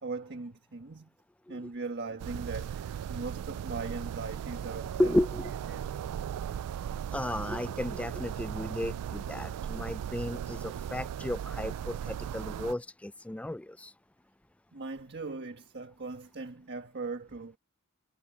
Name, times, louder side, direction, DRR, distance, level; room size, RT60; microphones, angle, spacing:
voice 1, 0.0-1.1 1.5-5.2 5.7-5.9 10.6-10.7 14.7-17.6, right 3 dB, 50° right, 1.5 m, -39 dB
sound 1, 2.2-12.7, right 9 dB, 85° right, 0.3 m, -37 dB
voice 2, 5.0-5.5 7.1-13.9, left 1 dB, 5° left, 0.3 m, -33 dB
head